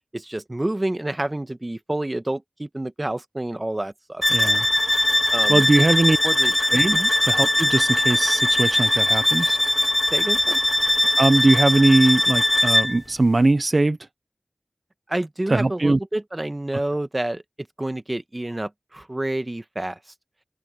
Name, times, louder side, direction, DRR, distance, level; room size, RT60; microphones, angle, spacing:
voice 1, 0.1-4.6 5.3-6.5 6.9-7.1 10.1-10.6 15.1-17.4 17.8-20.0, right 1 dB, 30° right, 1.2 m, -29 dB
sound 1, 4.2-13.0, left 1 dB, 25° left, 1.5 m, -20 dB
voice 2, 4.3-4.6 5.5-6.2 6.7-9.6 11.2-14.0 15.5-16.0, right 2 dB, 55° right, 0.5 m, -20 dB
wide cardioid pair, 70°, 0 cm